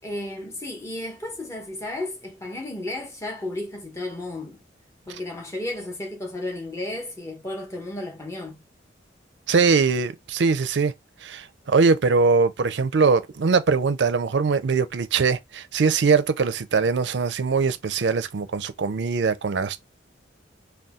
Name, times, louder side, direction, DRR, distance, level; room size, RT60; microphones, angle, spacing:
voice 1, 0.0-4.6 5.1-8.6, left 1 dB, 15° left, 1.0 m, -33 dB
voice 2, 9.5-10.9 11.2-19.8, right 4 dB, 70° right, 0.5 m, -22 dB
4.1 x 2.3 x 3.6 m
head